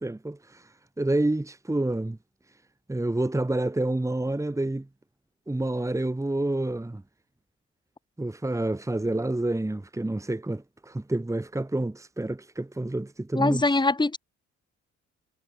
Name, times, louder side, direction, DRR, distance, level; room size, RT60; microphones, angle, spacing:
voice 1, 0.0-2.2 2.9-4.9 5.5-7.0 8.2-13.6, right 2 dB, 10° right, 2.0 m, -28 dB
voice 2, 13.3-14.2, left 2 dB, 15° left, 2.7 m, -23 dB
cardioid pair, 90°, 30 cm